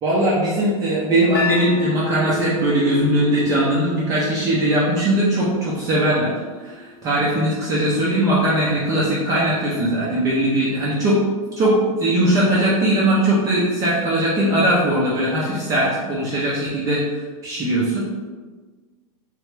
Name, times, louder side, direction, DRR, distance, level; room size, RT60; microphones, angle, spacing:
voice 1, 0.0-6.3 6.6-11.2 11.6-17.0 17.4-18.0, right 1 dB, 15° right, -7 dB, 0.5 m, -20 dB
sound 1, 1.3-7.5, left 3 dB, 45° left, 0.5 m, -32 dB
3.4 x 3.0 x 3.2 m, 1.4 s
supercardioid pair, 160°, 19 cm